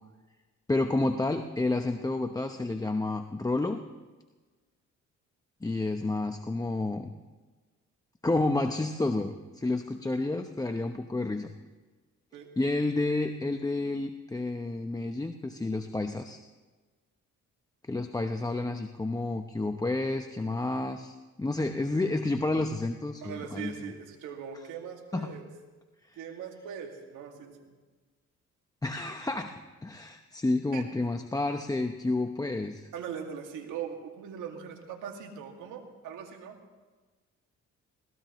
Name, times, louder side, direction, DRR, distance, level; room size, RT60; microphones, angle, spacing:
voice 1, 0.7-3.8 5.6-7.1 8.2-11.5 12.6-16.4 17.9-23.7 25.1-25.3 26.1-26.2 28.8-32.9, left 2 dB, 10° left, 6 dB, 0.9 m, -30 dB
voice 2, 23.2-25.5 26.2-27.8 30.7-30.9 32.9-36.6, right 7 dB, 85° right, 3 dB, 2.3 m, -40 dB
22.0 x 18.0 x 3.1 m, 1.3 s
cardioid pair, 90°, 30 cm